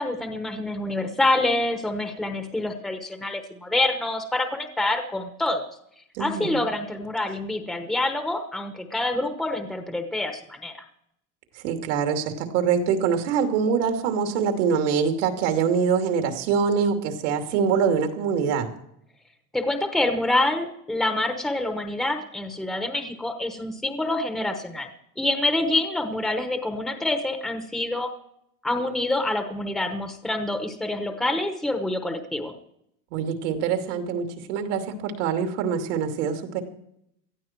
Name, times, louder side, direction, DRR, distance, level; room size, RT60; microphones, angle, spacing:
voice 1, 0.0-5.7 6.2-10.7 19.5-24.9 25.2-28.1 28.6-32.5, left 2 dB, ahead, 5 dB, 1.0 m, -26 dB
voice 2, 6.1-6.7 11.6-18.7 33.1-36.6, right 6 dB, 70° right, 5 dB, 2.8 m, -24 dB
18.5 x 13.5 x 4.5 m, 0.75 s
cardioid pair, 175°, 36 cm